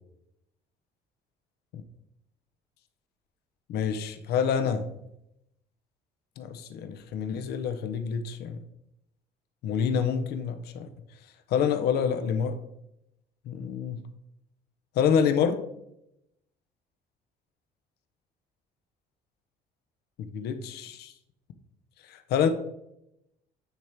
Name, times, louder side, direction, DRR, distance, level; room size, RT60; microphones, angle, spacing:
voice 1, 3.7-4.9 6.4-8.6 9.6-10.9 11.5-12.6 13.5-14.0 14.9-15.6 20.2-21.1 22.1-22.5, left 7 dB, 75° left, 10 dB, 0.7 m, -27 dB
9.2 x 3.5 x 4.4 m, 0.83 s
cardioid pair, 110°, 17 cm